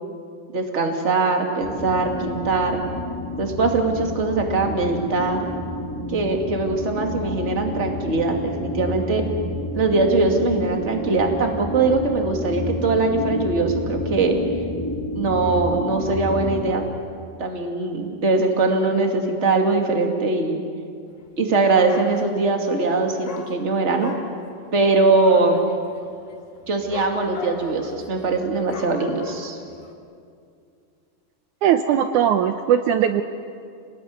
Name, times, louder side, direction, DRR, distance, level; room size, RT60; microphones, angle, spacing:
voice 1, 0.5-2.8 3.4-5.4 6.1-9.2 9.7-14.4 15.1-16.8 17.4-20.6 21.4-24.1 24.7-25.7 26.7-29.6, right 3 dB, 25° right, 3 dB, 1.8 m, -21 dB
sound 1, 1.6-16.7, left 2 dB, 10° left, 1.5 m, -30 dB
Dog, 21.4-21.6 21.8-22.6 23.2-29.9, left 4 dB, 65° left, 3.8 m, -38 dB
voice 2, 31.6-33.2, right 9 dB, 90° right, 8 dB, 1.7 m, -19 dB
27.5 x 19.5 x 9.5 m, 2.4 s
omnidirectional pair, 4.6 m